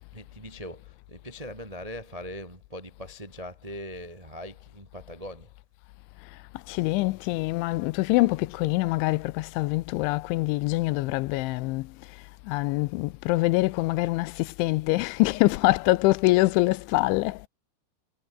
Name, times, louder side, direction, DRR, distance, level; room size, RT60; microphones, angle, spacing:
voice 1, 0.1-5.5, equal, 35° right, 0.5 m, -41 dB
voice 2, 6.7-11.9 12.5-17.5, left 21 dB, 85° left, 3.0 m, -24 dB
omnidirectional pair, 5.5 m